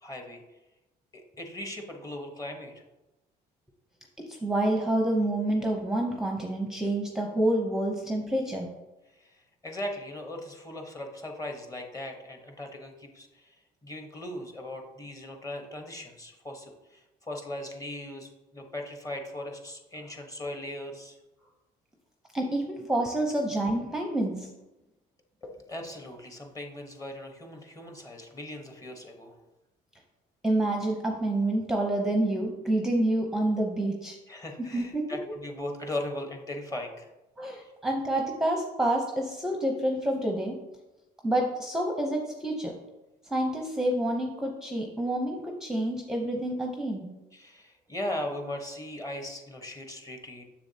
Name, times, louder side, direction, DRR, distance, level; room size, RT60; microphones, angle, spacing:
voice 1, 0.0-0.4 1.1-2.7 9.6-13.5 13.8-21.2 25.4-29.3 34.3-37.1 47.3-50.4, left 1 dB, 20° left, 3 dB, 1.1 m, -38 dB
voice 2, 4.3-8.7 22.3-24.5 30.4-34.2 34.7-35.1 37.4-40.6 41.2-42.7 43.3-47.1, right 1 dB, 5° right, 1 dB, 0.7 m, -28 dB
7.0 x 6.9 x 2.8 m, 1.0 s
cardioid pair, 110°, 17 cm